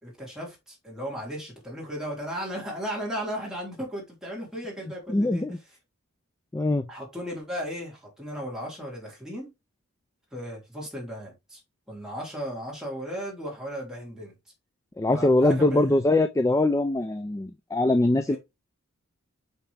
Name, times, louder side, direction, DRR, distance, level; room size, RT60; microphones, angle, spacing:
voice 1, 0.0-5.5 6.9-9.5 10.3-11.6 11.9-14.3 15.1-16.0 18.3-18.4, equal, ahead, 2.9 m, -35 dB
voice 2, 5.1-5.6 6.5-6.9 15.0-18.4, left 2 dB, 15° left, 0.3 m, -22 dB
5.8 x 5.6 x 3.3 m
head